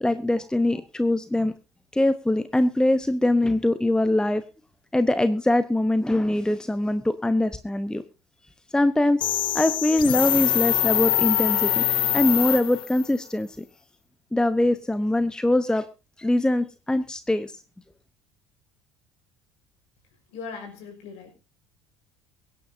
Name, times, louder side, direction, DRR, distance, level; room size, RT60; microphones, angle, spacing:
voice 1, 0.0-1.5 1.9-4.4 4.9-8.0 8.7-9.2 9.5-11.8 12.1-13.6 14.3-15.9 16.2-17.5, left 1 dB, 5° left, 13 dB, 0.9 m, -22 dB
sound 1, 9.2-13.1, left 12 dB, 35° left, 0.5 m, -23 dB
voice 2, 20.3-21.3, left 5 dB, 55° left, 4 dB, 5.7 m, -39 dB
23.5 x 10.0 x 2.7 m, 0.32 s
figure-of-eight pair, 60°, 14 cm